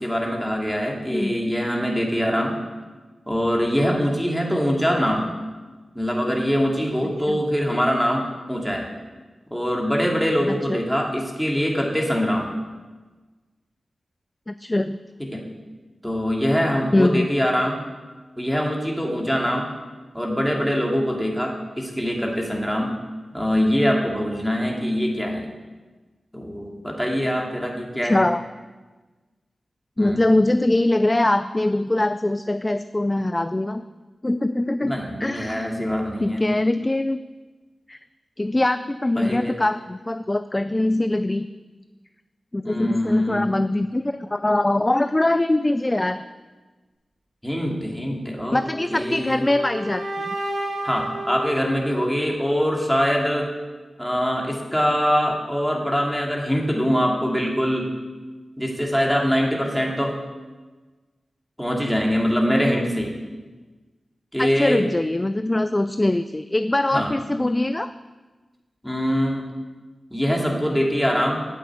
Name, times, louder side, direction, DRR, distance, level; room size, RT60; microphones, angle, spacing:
voice 1, 0.0-2.6 3.3-5.3 5.9-8.9 9.5-12.5 15.2-15.4 16.0-17.8 18.4-19.7 20.1-22.9 23.3-25.5 26.3-28.2 30.0-30.2 34.8-36.4 39.2-39.6 42.6-43.5 47.4-48.6 48.9-49.4 50.8-53.5 54.0-57.9 58.6-60.2 61.6-63.1 64.3-64.8 66.9-67.1 68.8-69.5 70.1-71.4, equal, ahead, -1 dB, 2.5 m, -23 dB
voice 2, 7.0-7.4 10.5-10.8 14.5-15.0 16.9-17.3 28.0-28.4 30.0-33.8 34.2-34.9 35.2-37.2 37.9-38.0 38.4-41.5 42.5-46.2 48.5-50.3 64.4-67.9, left 1 dB, 20° left, 12 dB, 0.4 m, -22 dB
sound 1, 48.5-52.5, right 1 dB, 75° right, 2.4 m, -32 dB
9.3 x 8.5 x 8.4 m, 1.3 s
wide cardioid pair, 70°, 0 cm